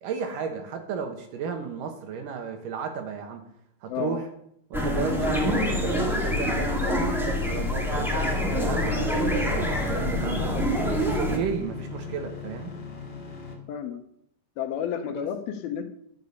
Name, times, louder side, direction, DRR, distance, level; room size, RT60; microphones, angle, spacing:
voice 1, 0.0-3.4 3.8-4.3 4.7-10.5 11.0-12.7 15.1-15.3, right 6 dB, 65° right, 5 dB, 2.6 m, -34 dB
voice 2, 3.9-4.2 13.7-14.0 14.6-15.8, left 9 dB, 80° left, 7 dB, 2.7 m, -31 dB
sound 1, 4.7-11.4, left 1 dB, 5° right, 0.4 m, -26 dB
sound 2, 7.7-13.6, left 4 dB, 55° left, 0.6 m, -38 dB
11.0 x 6.9 x 7.1 m, 0.71 s
omnidirectional pair, 4.5 m